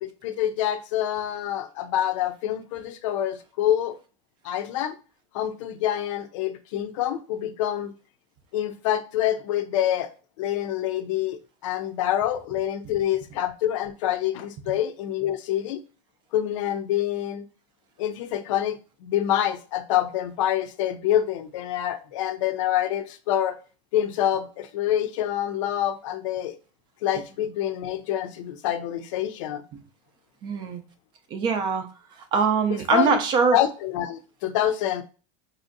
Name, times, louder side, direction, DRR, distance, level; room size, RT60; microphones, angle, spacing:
voice 1, 0.0-4.0 4.4-5.0 5.3-7.9 8.5-10.1 10.4-15.8 16.3-17.4 18.0-23.6 23.9-26.6 27.0-29.6 32.7-33.2 33.5-35.0, left 11 dB, 85° left, 0.5 m, -26 dB
voice 2, 30.4-30.8 31.3-31.9 32.3-33.6, right 6 dB, 30° right, 0.4 m, -22 dB
4.1 x 2.6 x 2.6 m
cardioid pair, 170°, 16 cm